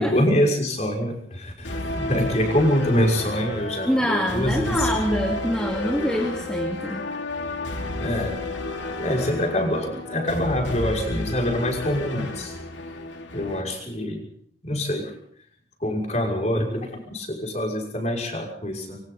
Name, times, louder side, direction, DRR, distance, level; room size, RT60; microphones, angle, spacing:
voice 1, 0.0-4.9 8.0-8.4 9.0-12.5 13.3-14.2 14.6-15.1 15.8-19.0, left 1 dB, 35° left, 1 dB, 6.1 m, -25 dB
sound 1, 1.6-13.6, left 1 dB, 80° left, 2.8 m, -31 dB
voice 2, 3.9-7.1, equal, 5° left, 0 dB, 2.6 m, -25 dB
26.5 x 24.5 x 4.1 m, 0.63 s
head